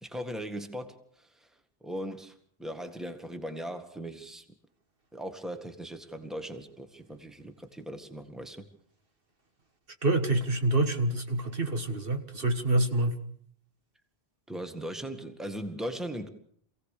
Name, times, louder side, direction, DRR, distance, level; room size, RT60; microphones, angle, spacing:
voice 1, 0.0-1.5 1.8-2.3 2.6-4.4 5.1-8.7 14.5-16.3, equal, ahead, 7 dB, 1.8 m, -39 dB
voice 2, 10.0-13.2, right 2 dB, 60° right, 6 dB, 1.9 m, -27 dB
27.5 x 17.0 x 6.7 m, 0.63 s
omnidirectional pair, 1.0 m